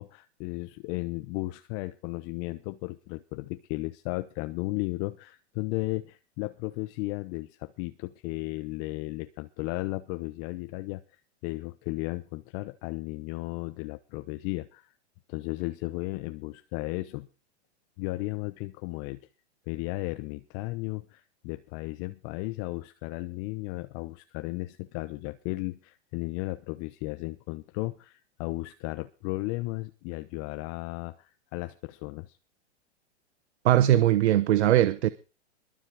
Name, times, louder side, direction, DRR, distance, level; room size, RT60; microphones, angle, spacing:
voice 1, 0.0-11.0 11.4-14.9 15.3-17.3 18.0-19.2 19.7-32.4, left 21 dB, 40° left, 0.9 m, -35 dB
voice 2, 33.6-35.1, right 12 dB, 70° right, 1.0 m, -20 dB
22.0 x 7.6 x 4.8 m
hypercardioid pair, 120°, 34 cm